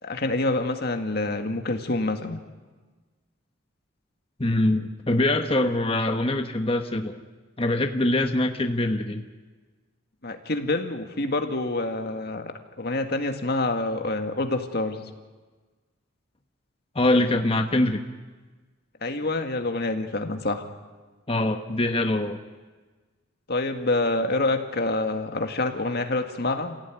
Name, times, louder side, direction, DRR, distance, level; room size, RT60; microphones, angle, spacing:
voice 1, 0.0-2.4 10.2-12.5 12.8-15.0 19.0-20.7 23.5-26.8, left 2 dB, 50° left, 5 dB, 2.0 m, -27 dB
voice 2, 4.4-7.2 7.6-9.2 16.9-18.0 21.3-22.4, left 1 dB, 30° left, 5 dB, 1.2 m, -23 dB
28.0 x 17.0 x 9.3 m, 1.3 s
head